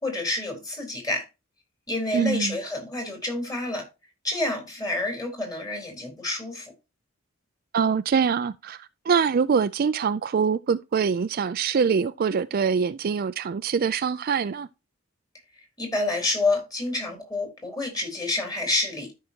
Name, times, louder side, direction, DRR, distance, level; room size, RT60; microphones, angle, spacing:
voice 1, 0.0-1.2 1.9-3.9 4.2-6.7 15.8-19.1, left 2 dB, 20° left, 3.8 m, -28 dB
voice 2, 2.1-2.6 7.7-14.7, right 6 dB, 45° right, 0.4 m, -24 dB
13.0 x 5.6 x 2.8 m
head